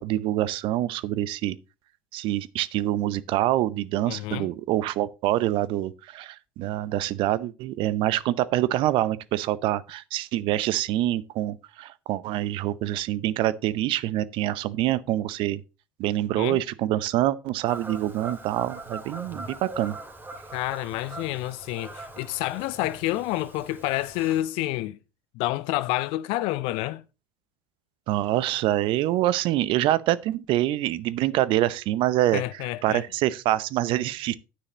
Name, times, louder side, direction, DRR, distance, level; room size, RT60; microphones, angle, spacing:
voice 1, 0.0-1.6 2.1-15.6 16.0-20.0 28.1-32.4 32.8-34.3, right 14 dB, 55° right, 0.8 m, -25 dB
voice 2, 4.1-4.5 16.3-16.6 20.5-25.0 25.3-27.0 32.3-33.0, left 16 dB, 55° left, 0.6 m, -29 dB
Fowl / Bird vocalization bird call bird song, 17.7-24.4, right 2 dB, 20° right, 2.3 m, -41 dB
9.8 x 9.7 x 2.9 m
figure-of-eight pair, 65°, 11 cm